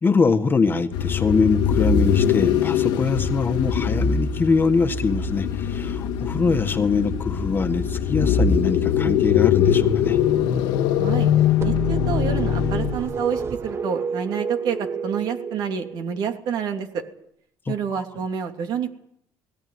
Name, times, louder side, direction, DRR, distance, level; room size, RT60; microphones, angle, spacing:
voice 1, 0.0-10.2 17.6-17.7, left 4 dB, 25° left, 8 dB, 1.7 m, -23 dB
sound 1, 0.9-13.1, left 8 dB, 85° left, 1.9 m, -22 dB
voice 2, 11.0-11.3 11.6-17.0 17.7-18.9, right 7 dB, 65° right, 5 dB, 3.0 m, -28 dB
sound 2, 11.6-16.3, right 6 dB, 35° right, 1.6 m, -30 dB
19.5 x 17.5 x 9.7 m, 0.74 s
cardioid pair, 105°, 8 cm